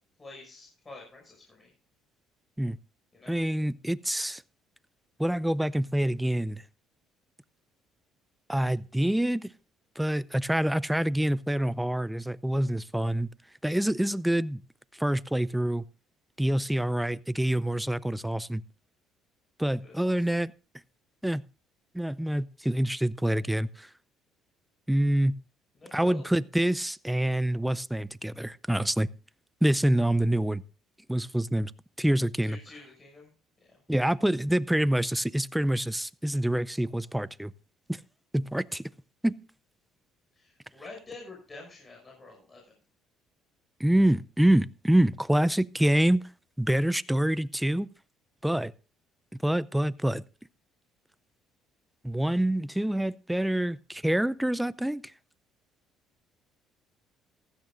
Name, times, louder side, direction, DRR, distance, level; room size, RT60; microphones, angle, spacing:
voice 1, 0.2-1.7 3.1-3.4 19.8-20.3 25.7-26.3 32.4-33.3 33.6-33.8 40.3-42.6, left 3 dB, 25° left, 6.4 m, -48 dB
voice 2, 3.3-4.4 5.2-6.6 8.5-9.5 10.0-13.3 13.6-14.6 15.0-15.8 16.4-18.6 19.6-20.5 21.2-21.4 21.9-23.9 24.9-25.4 25.9-29.1 29.6-30.6 31.1-31.7 32.0-32.6 33.9-37.5 37.9-38.0 38.3-38.8 39.2-39.4 43.8-46.2 46.6-47.9 48.4-48.7 49.4-50.2 52.0-55.0, right 1 dB, 5° right, 0.5 m, -26 dB
16.0 x 13.5 x 2.5 m
cardioid pair, 95°, 0 cm